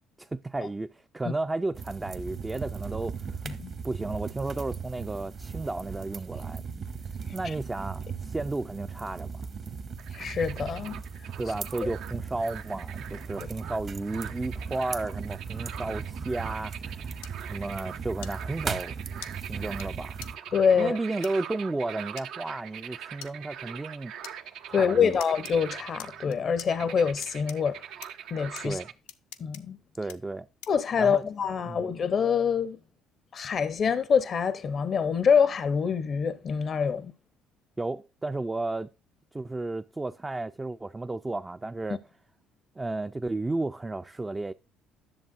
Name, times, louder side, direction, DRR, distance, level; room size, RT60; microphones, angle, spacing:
voice 1, 0.2-3.3 3.8-6.6 7.3-9.5 11.4-18.9 19.3-20.2 20.7-24.1 24.7-25.2 28.6-28.9 30.0-30.5 31.0-31.2 31.7-31.9 37.8-38.9 39.3-42.0 42.8-44.5, right 2 dB, 20° right, 0.4 m, -33 dB
sound 1, 1.7-20.4, right 5 dB, 50° right, 1.1 m, -38 dB
sound 2, 10.0-28.9, right 9 dB, 70° right, 0.6 m, -43 dB
voice 2, 10.1-11.0 20.5-21.0 24.7-27.8 28.3-28.8 29.4-29.8 30.7-32.8 33.3-37.1, left 6 dB, 50° left, 0.6 m, -25 dB
sound 3, 17.2-17.3 18.2-18.3 19.2-19.3 19.8-19.9 20.2-20.3 21.2-21.3 22.2-22.3 23.2-23.3 24.2-24.4 25.2-25.5 26.0-26.7 27.2-27.6 28.0-28.1 28.6-28.7 29.1-29.6 30.1-30.2 30.6-30.8, left 11 dB, 90° left, 0.6 m, -42 dB
11.0 x 6.9 x 2.5 m
supercardioid pair, 70°, 0 cm